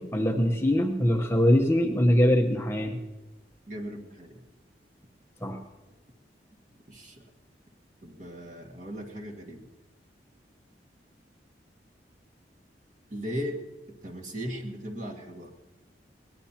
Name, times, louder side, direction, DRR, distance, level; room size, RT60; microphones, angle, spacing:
voice 1, 0.0-3.0 5.4-5.6, equal, 15° left, 3 dB, 1.0 m, -23 dB
voice 2, 3.7-4.4 6.9-7.3 8.0-9.7 13.1-13.6 13.9-15.5, equal, 45° right, 1 dB, 2.0 m, -37 dB
22.5 x 19.0 x 2.9 m, 1.1 s
head